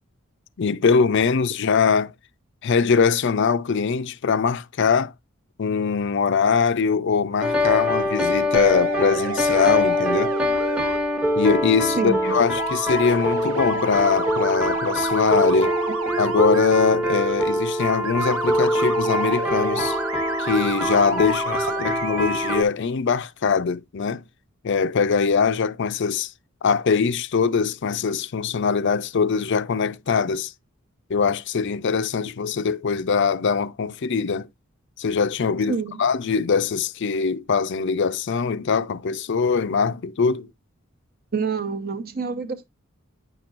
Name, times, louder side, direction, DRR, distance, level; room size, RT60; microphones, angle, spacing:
voice 1, 0.6-2.1 2.6-5.1 5.6-10.3 11.4-15.7 16.2-20.0 20.4-24.2 24.6-26.3 26.6-30.5 31.1-34.5 35.0-40.5, left 5 dB, 60° left, 0.5 m, -22 dB
sound 1, 7.4-22.6, left 1 dB, 5° right, 0.9 m, -24 dB
sound 2, 8.5-11.0 12.2-16.7 17.0-17.3 18.0-22.6, right 5 dB, 85° right, 0.6 m, -32 dB
voice 2, 12.0-12.3 35.7-36.0 41.3-42.6, right 5 dB, 45° right, 0.9 m, -27 dB
9.0 x 6.1 x 2.4 m
head